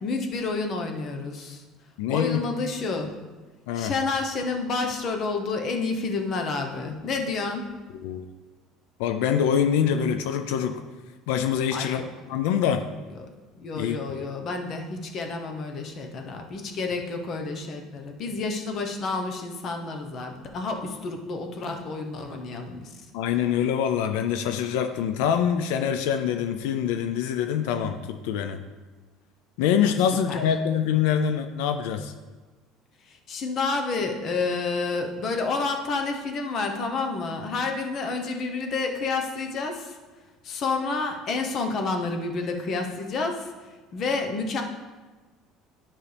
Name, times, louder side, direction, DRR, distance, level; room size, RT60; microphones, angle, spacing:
voice 1, 0.0-1.6 2.1-3.2 3.7-7.7 11.7-12.1 13.2-13.3 13.6-22.9 30.3-30.4 33.1-40.0 40.4-44.6, left 3 dB, 35° left, 4 dB, 1.0 m, -29 dB
voice 2, 2.0-2.4 3.7-3.9 7.9-8.2 9.0-10.8 11.3-12.0 12.3-12.9 13.7-14.0 23.1-28.6 29.6-32.1, left 8 dB, 90° left, 8 dB, 0.5 m, -25 dB
11.5 x 5.4 x 3.4 m, 1.3 s
cardioid pair, 165°, 0 cm